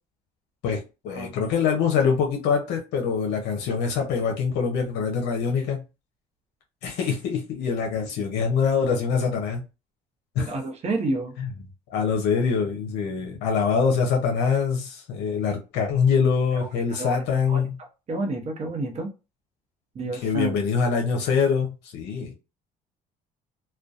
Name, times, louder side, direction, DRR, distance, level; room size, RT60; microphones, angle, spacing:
voice 1, 0.6-5.8 6.8-9.6 10.4-10.5 11.4-11.5 11.9-17.7 20.2-22.3, left 6 dB, 80° left, 0.6 m, -24 dB
voice 2, 10.4-11.3 16.5-19.1 19.9-20.5, right 2 dB, 40° right, 0.7 m, -30 dB
2.6 x 2.1 x 2.3 m
cardioid pair, 110°, 17 cm